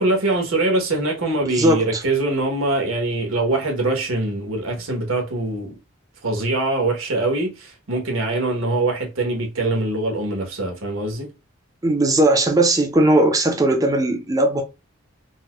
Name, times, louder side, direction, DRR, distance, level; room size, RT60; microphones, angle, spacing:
voice 1, 0.0-5.8 6.2-11.3, right 2 dB, 80° right, 1.1 m, -23 dB
voice 2, 1.5-2.0 11.8-14.6, right 1 dB, 15° right, 0.6 m, -18 dB
4.1 x 2.2 x 2.3 m
head